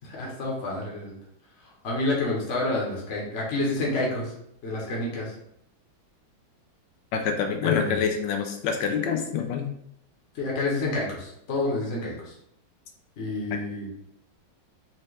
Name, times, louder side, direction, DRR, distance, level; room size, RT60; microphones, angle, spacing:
voice 1, 0.0-1.1 1.8-4.3 4.6-5.3 7.6-8.0 10.3-12.3 13.2-13.9, left 2 dB, 45° left, -4 dB, 1.2 m, -29 dB
voice 2, 7.1-9.7 13.5-13.6, left 6 dB, 75° left, 4 dB, 1.2 m, -26 dB
4.3 x 2.9 x 3.1 m, 0.75 s
omnidirectional pair, 2.2 m